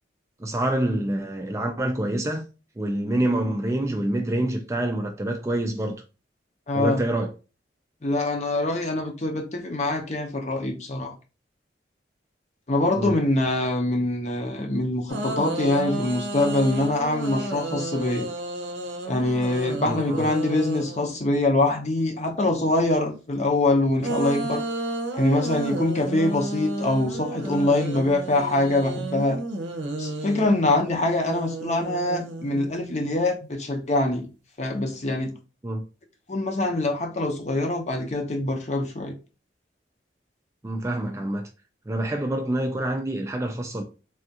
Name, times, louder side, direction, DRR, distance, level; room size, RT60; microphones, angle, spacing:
voice 1, 0.4-2.4 2.8-6.0 6.7-7.3 13.0-13.2 19.8-20.3 35.6-35.8 40.6-41.5 41.9-43.8, right 1 dB, 15° right, 0.3 m, -26 dB
voice 2, 6.7-7.0 8.0-11.1 12.7-18.3 19.1-24.6 25.1-29.4 30.0-34.3 34.6-35.3 36.3-39.1, left 2 dB, 40° left, 0.6 m, -24 dB
sound 1, 15.1-21.4 24.0-33.1, right 2 dB, 85° right, 0.6 m, -32 dB
3.4 x 2.4 x 2.7 m
head